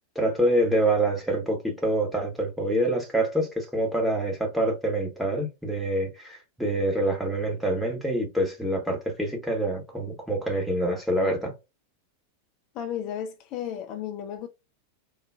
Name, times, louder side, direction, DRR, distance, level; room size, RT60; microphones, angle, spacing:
voice 1, 0.1-11.5, right 1 dB, ahead, 1.2 m, -26 dB
voice 2, 12.7-14.5, left 9 dB, 40° left, 0.4 m, -33 dB
3.9 x 2.4 x 2.3 m
figure-of-eight pair, 90°, 0 cm